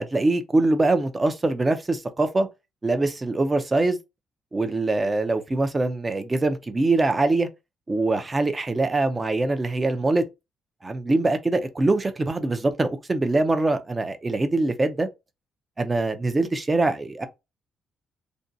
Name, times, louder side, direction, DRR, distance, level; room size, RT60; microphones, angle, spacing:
voice 1, 0.0-2.5 2.8-4.0 4.5-7.5 7.9-10.2 10.8-15.1 15.8-17.2, right 2 dB, 25° right, 0.5 m, -23 dB
2.6 x 2.1 x 2.6 m
cardioid pair, 90°, 0 cm